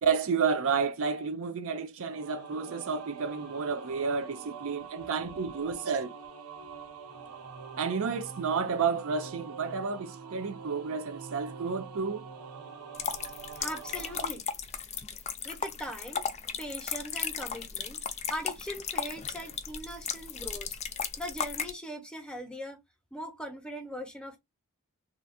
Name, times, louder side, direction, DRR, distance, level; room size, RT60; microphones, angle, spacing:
voice 1, 0.0-6.1 7.8-12.2, right 5 dB, 65° right, 0.5 m, -31 dB
sound 1, 2.1-14.3, right 5 dB, 85° right, 0.8 m, -45 dB
sound 2, 12.9-21.7, left 7 dB, 30° left, 0.5 m, -35 dB
voice 2, 13.6-14.4 15.4-16.3 16.6-18.0 18.3-20.8 21.2-22.8 23.1-24.4, equal, 5° left, 0.9 m, -40 dB
3.4 x 2.4 x 2.6 m
head